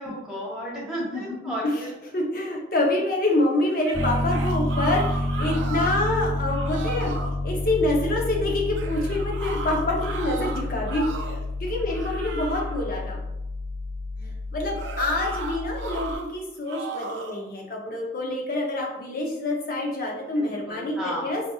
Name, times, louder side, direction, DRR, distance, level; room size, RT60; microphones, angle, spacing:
voice 1, 0.0-1.9 2.4-2.6 15.1-15.3 20.3-21.3, equal, 5° right, -7 dB, 1.1 m, -34 dB
voice 2, 2.1-7.1 7.4-13.2 14.2-21.4, left 2 dB, 50° left, -1 dB, 0.7 m, -26 dB
sound 1, 3.7-6.1 6.4-7.4 8.7-11.5 11.9-12.8 14.7-16.2 16.7-17.4, right 4 dB, 75° right, 0.4 m, -36 dB
Piano, 3.9-16.1, left 1 dB, 55° right, 0.8 m, -29 dB
4.1 x 2.7 x 2.3 m, 0.89 s
head